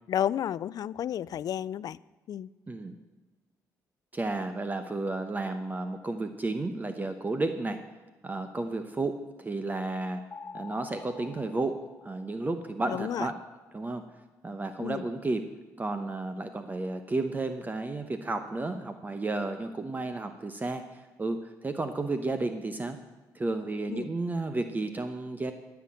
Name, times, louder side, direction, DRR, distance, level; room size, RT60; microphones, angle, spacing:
voice 1, 0.1-2.0 2.3-2.5 12.9-13.3 14.8-15.1 23.9-24.1, left 10 dB, 60° left, 21 dB, 0.4 m, -31 dB
voice 2, 4.1-7.8 8.2-10.2 10.5-13.3 13.7-14.0 14.4-15.4 15.8-23.0 23.3-25.5, right 2 dB, 25° right, 8 dB, 0.9 m, -32 dB
sound 1, 10.3-12.8, left 5 dB, 30° left, 0.7 m, -47 dB
14.0 x 5.9 x 8.7 m, 1.2 s
cardioid pair, 75°, 7 cm